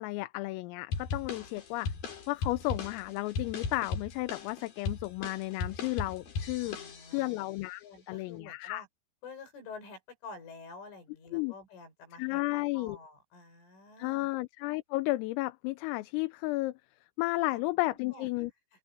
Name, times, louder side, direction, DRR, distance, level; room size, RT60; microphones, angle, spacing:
voice 1, 0.0-1.9 2.3-6.8 7.1-8.8 11.3-11.5 12.2-13.0 14.0-16.8 17.2-18.5, left 20 dB, 85° left, 3.5 m, -33 dB
sound 1, 0.9-7.3, left 5 dB, 50° left, 5.4 m, -37 dB
voice 2, 6.6-7.4 7.8-8.9 9.2-14.3 17.4-18.3, left 4 dB, 70° left, 10.0 m, -49 dB
open air
omnidirectional pair, 5.9 m